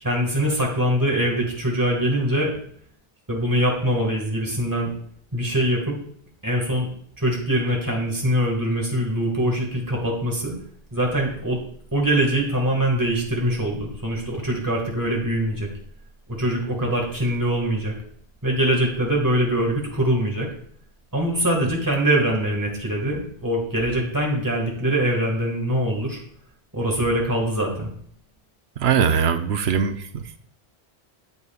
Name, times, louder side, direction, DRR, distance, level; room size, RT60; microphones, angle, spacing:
voice 1, 0.0-2.5 3.3-4.9 5.3-6.0 6.4-6.9 7.2-10.5 10.9-11.6 11.9-15.7 16.3-17.9 18.4-20.5 21.1-26.2 26.7-27.9, right 1 dB, 20° right, -1 dB, 1.8 m, -23 dB
voice 2, 28.8-30.4, right 7 dB, 75° right, 9 dB, 0.9 m, -21 dB
8.3 x 8.1 x 2.3 m, 0.64 s
omnidirectional pair, 1.1 m